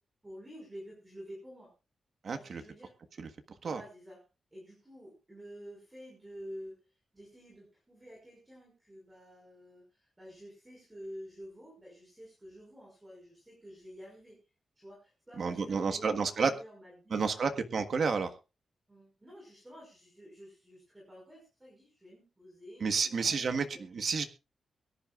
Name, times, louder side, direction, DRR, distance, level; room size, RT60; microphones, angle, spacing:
voice 1, 0.2-1.7 2.3-2.9 3.6-4.2 4.5-6.7 7.1-14.4 14.8-17.6 18.9-23.4 23.7-23.8, equal, 10° right, -3 dB, 5.4 m, -50 dB
voice 2, 2.2-2.6 3.2-3.3 3.6-3.8 15.4-16.5 17.1-18.3 22.8-24.2, right 5 dB, 50° right, 6 dB, 1.4 m, -30 dB
23.0 x 11.0 x 2.5 m, 0.30 s
wide cardioid pair, 170°, 0 cm